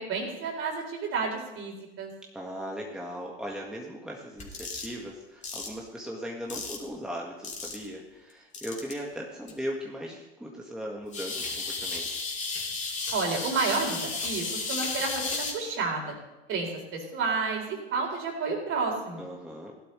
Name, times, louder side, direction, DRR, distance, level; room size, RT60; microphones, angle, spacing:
voice 1, 0.0-2.1 13.1-16.2 16.5-19.2, right 4 dB, 40° right, 1 dB, 4.0 m, -31 dB
voice 2, 2.3-12.1 19.2-19.7, equal, ahead, -2 dB, 1.8 m, -38 dB
sound 1, 4.4-4.9 5.4-5.7 6.5-6.9 7.4-7.9 8.5-8.9 9.5-9.6 11.1-15.5, left 4 dB, 20° left, 3.1 m, -33 dB
17.0 x 11.5 x 3.3 m, 1.0 s
hypercardioid pair, 90°, 32 cm